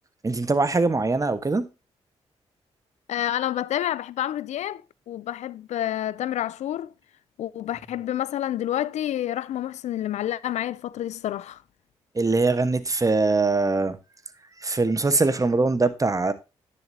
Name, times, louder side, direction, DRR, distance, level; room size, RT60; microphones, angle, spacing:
voice 1, 0.2-1.6 12.1-14.0 14.6-16.3, right 3 dB, 30° right, 1.3 m, -22 dB
voice 2, 3.1-6.9 7.4-11.6, left 12 dB, 75° left, 0.4 m, -29 dB
10.0 x 6.8 x 2.8 m
supercardioid pair, 50°, 12 cm